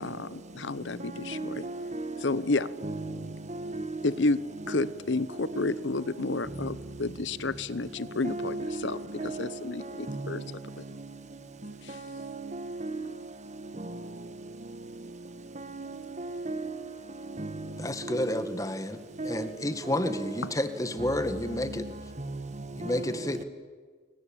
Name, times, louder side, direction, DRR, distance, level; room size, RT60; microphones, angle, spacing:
voice 1, 0.0-1.5 2.2-2.7 4.0-4.4 4.7-8.6 8.8-9.0 9.4-10.4, left 3 dB, 70° left, 0.9 m, -30 dB
voice 2, 1.1-2.4 2.8-4.2 4.6-4.9 5.5-5.9 6.6-6.7 8.2-9.8 10.1-11.1 11.6-13.1 13.7-14.1 15.5-17.0 17.3-18.6 19.2-20.5 21.0-21.2 21.4-21.9 22.2-23.1 23.4-23.5, right 2 dB, 35° right, 1.5 m, -37 dB
voice 3, 17.8-19.0 19.3-21.8 22.8-23.4, left 1 dB, 15° left, 1.6 m, -30 dB
29.5 x 23.0 x 8.8 m
head